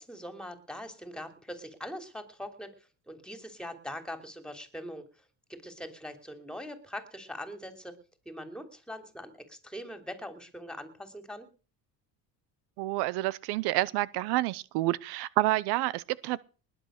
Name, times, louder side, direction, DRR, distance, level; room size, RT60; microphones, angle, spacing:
voice 1, 0.0-8.0 8.2-11.5, equal, ahead, 3.2 m, -42 dB
voice 2, 12.8-16.4, right 18 dB, 80° right, 0.7 m, -29 dB
20.0 x 8.1 x 6.5 m
cardioid pair, 110°, 38 cm